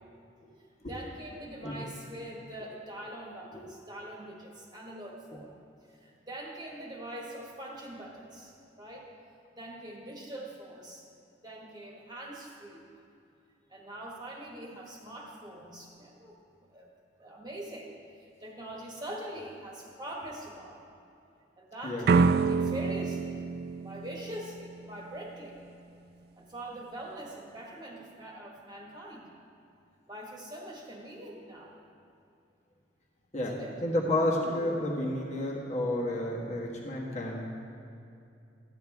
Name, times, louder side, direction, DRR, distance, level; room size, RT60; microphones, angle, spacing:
voice 1, 0.8-5.5 6.0-9.1 9.5-11.0 11.4-12.9 13.7-16.3 16.7-16.9 17.2-17.9 18.2-20.8 21.6-23.4 23.8-25.6 26.4-29.3 30.1-31.7 33.4-33.8, right 1 dB, 20° right, -2 dB, 1.5 m, -43 dB
voice 2, 21.8-22.1 33.3-33.5 33.8-37.5, left 1 dB, 40° left, -3 dB, 1.4 m, -31 dB
sound 1, 22.1-25.0, right 4 dB, 55° right, 0.3 m, -27 dB
14.0 x 9.2 x 3.5 m, 2.7 s
head